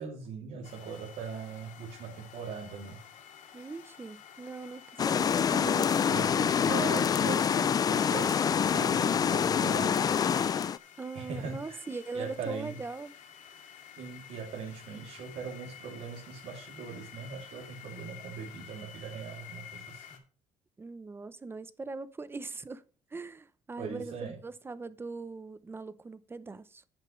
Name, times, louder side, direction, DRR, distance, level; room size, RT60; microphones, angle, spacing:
voice 1, 0.0-3.0 6.1-10.1 11.1-11.8 12.1-12.7 14.0-20.2 23.8-24.4, right 6 dB, 70° right, 2.8 m, -40 dB
sound 1, 0.6-20.2, left 8 dB, 70° left, 2.4 m, -51 dB
voice 2, 3.5-5.9 11.0-13.1 20.8-22.8 23.1-26.8, right 3 dB, 15° right, 0.7 m, -40 dB
sound 2, 5.0-10.8, left 7 dB, 30° left, 0.3 m, -26 dB
9.7 x 9.4 x 3.2 m
cardioid pair, 145°, 13 cm